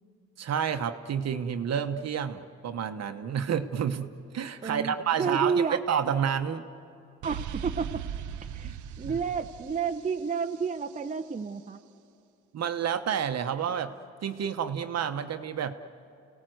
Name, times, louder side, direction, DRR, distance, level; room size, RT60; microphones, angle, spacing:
voice 1, 0.4-6.6 8.6-8.8 12.5-13.9 14.2-15.7, right 8 dB, 60° right, 8 dB, 1.1 m, -29 dB
voice 2, 4.6-5.8 7.2-8.0 8.5-11.8, right 5 dB, 25° right, 6 dB, 0.9 m, -30 dB
sound 1, 7.2-11.0, right 9 dB, 80° right, 0.7 m, -39 dB
30.0 x 18.0 x 7.9 m, 2.5 s
cardioid pair, 90°, 30 cm